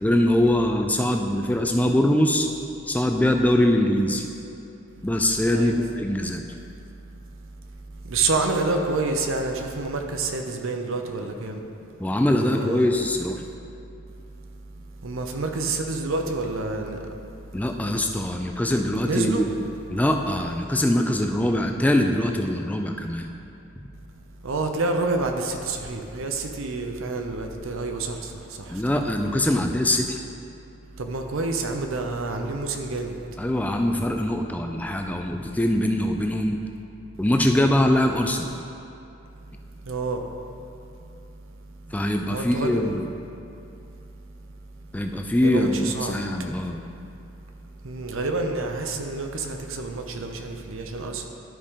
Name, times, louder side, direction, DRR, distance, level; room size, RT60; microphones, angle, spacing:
voice 1, 0.0-2.5 2.9-4.2 5.0-6.4 12.0-13.4 17.5-19.5 19.9-23.3 28.7-30.2 33.4-36.6 37.2-38.5 41.9-43.0 44.9-46.8, left 1 dB, 5° left, 4 dB, 0.3 m, -23 dB
voice 2, 8.1-11.6 12.4-12.9 15.0-17.0 19.0-19.5 24.4-28.3 28.6-29.1 31.0-33.2 39.8-40.3 42.3-43.0 45.4-46.2 47.8-51.2, right 3 dB, 75° right, 4 dB, 0.7 m, -28 dB
12.0 x 5.0 x 3.6 m, 2.7 s
head